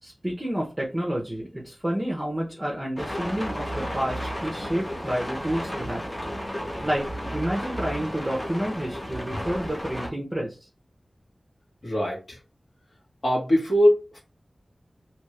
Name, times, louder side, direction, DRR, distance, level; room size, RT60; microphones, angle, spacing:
voice 1, 0.0-6.1 6.8-10.6, equal, 15° right, -2 dB, 0.8 m, -29 dB
sound 1, 3.0-10.1, equal, 20° left, 0.9 m, -33 dB
voice 2, 11.8-12.4 13.2-14.2, equal, 60° left, -3 dB, 1.6 m, -22 dB
2.8 x 2.5 x 3.2 m, 0.30 s
wide cardioid pair, 80°, 0 cm